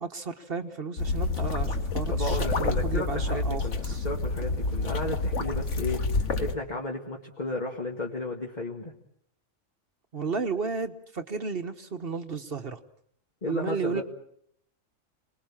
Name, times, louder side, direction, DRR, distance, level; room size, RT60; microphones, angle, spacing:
voice 1, 0.0-4.0 10.1-12.8 13.5-14.0, right 4 dB, 45° right, 8 dB, 1.3 m, -33 dB
sound 1, 1.0-6.6, left 3 dB, 65° left, 1.8 m, -28 dB
voice 2, 2.1-8.9 13.4-14.0, left 2 dB, 35° left, 0 dB, 2.1 m, -33 dB
28.0 x 20.5 x 7.3 m, 0.69 s
omnidirectional pair, 1.4 m